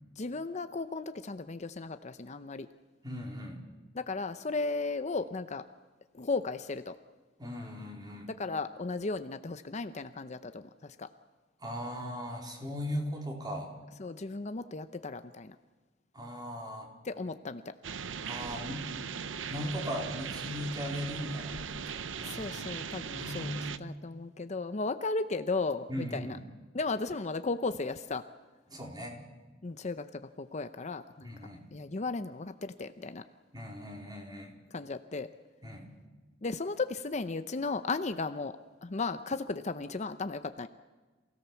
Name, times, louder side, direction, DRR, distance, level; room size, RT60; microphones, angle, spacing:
voice 1, 0.2-2.7 3.9-5.6 6.1-7.0 8.3-11.1 14.0-15.6 17.0-17.6 22.2-23.5 23.8-26.4 26.7-28.2 29.6-31.3 31.7-33.2 34.7-35.3 36.4-40.7, left 3 dB, 40° left, 10 dB, 0.7 m, -35 dB
voice 2, 3.0-3.6 7.4-8.3 11.6-13.7 16.1-16.9 18.3-18.8 19.5-22.5 23.1-23.7 25.9-26.5 28.7-29.2 31.2-31.6 33.5-34.6 35.6-35.9, equal, 20° right, 1 dB, 4.1 m, -38 dB
sound 1, 17.8-23.8, right 6 dB, 85° right, 0.8 m, -39 dB
27.5 x 17.0 x 7.1 m, 1.3 s
head